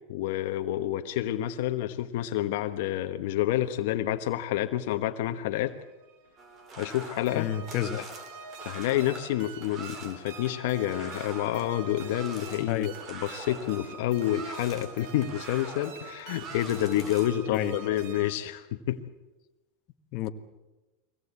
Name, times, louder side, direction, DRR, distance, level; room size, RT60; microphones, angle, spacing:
voice 1, 0.1-5.8 6.8-7.5 8.0-8.1 8.6-19.0, left 13 dB, 70° left, 7 dB, 1.2 m, -29 dB
sound 1, 5.7-18.4, right 6 dB, 65° right, 1.7 m, -46 dB
sound 2, 6.4-17.3, right 3 dB, 35° right, 3.9 m, -44 dB
voice 2, 7.3-8.0 12.7-12.9 17.5-17.7 20.1-20.3, left 12 dB, 50° left, 7 dB, 1.4 m, -29 dB
23.5 x 18.0 x 8.4 m, 1.1 s
supercardioid pair, 130°, 0 cm